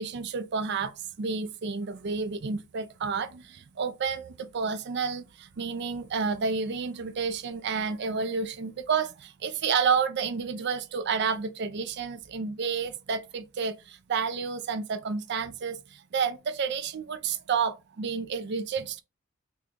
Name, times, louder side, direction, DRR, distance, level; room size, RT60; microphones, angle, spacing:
voice 1, 0.0-19.0, right 5 dB, 55° right, 0.4 m, -30 dB
3.9 x 2.3 x 3.5 m
head